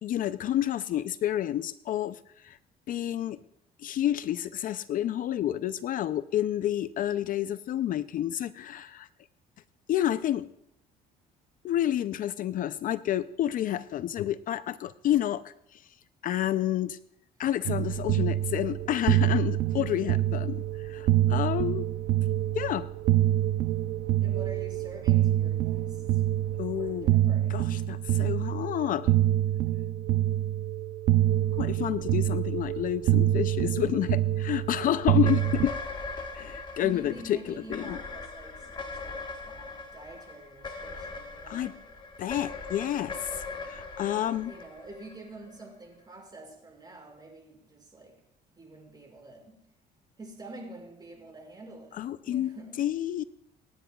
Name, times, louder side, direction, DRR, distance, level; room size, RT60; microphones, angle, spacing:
voice 1, 0.0-2.6 2.9-3.4 3.8-9.1 9.9-10.5 11.6-15.8 16.2-17.0 17.4-21.8 22.5-22.9 26.6-27.1 27.5-29.1 31.6-35.8 36.3-38.0 41.5-41.7 42.2-44.5 52.0-53.2, left 12 dB, 55° left, 14 dB, 0.4 m, -29 dB
sound 1, 17.6-35.7, right 13 dB, 75° right, 0.6 m, -26 dB
voice 2, 24.2-26.2 26.8-27.8 36.8-41.8 44.0-48.2 48.5-49.6 50.2-52.0 52.3-52.9, right 2 dB, 25° right, 0 dB, 5.4 m, -47 dB
sound 2, 35.2-45.6, left 3 dB, 25° left, 1.3 m, -40 dB
28.5 x 10.0 x 2.3 m, 0.78 s
cardioid pair, 110°, 17 cm